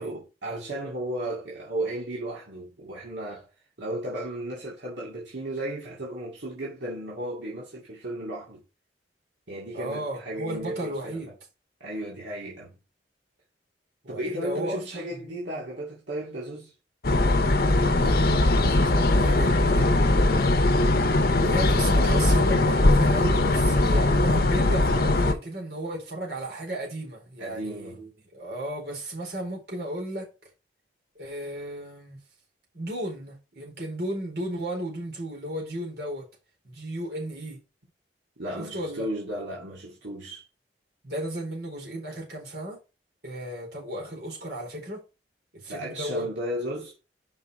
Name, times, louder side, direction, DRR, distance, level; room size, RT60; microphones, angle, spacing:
voice 1, 0.0-3.5 3.8-8.6 9.5-11.3 11.8-12.8 14.1-16.7 27.4-28.1 38.4-40.4 45.7-46.9, right 1 dB, 75° right, 2.3 m, -34 dB
voice 2, 9.7-11.3 14.0-15.2 17.4-18.2 18.5-20.4 21.3-30.3 31.1-32.2 32.7-36.3 36.6-37.6 38.6-39.1 41.0-42.8 43.2-45.0 45.5-46.3, right 1 dB, 55° right, 4.2 m, -34 dB
sound 1, 17.0-25.3, left 2 dB, 55° left, 0.9 m, -20 dB
5.5 x 5.4 x 4.8 m
head